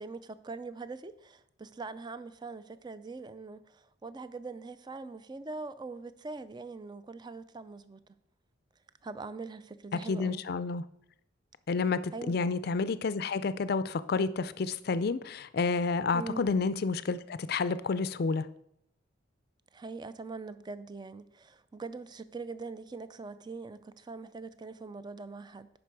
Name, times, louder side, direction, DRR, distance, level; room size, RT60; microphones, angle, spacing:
voice 1, 0.0-8.2 9.0-10.4 12.1-12.4 16.1-16.5 19.7-25.7, right 3 dB, 20° right, 0.4 m, -42 dB
voice 2, 10.1-10.8 11.7-18.5, left 4 dB, 50° left, 0.4 m, -30 dB
10.0 x 5.3 x 4.7 m
head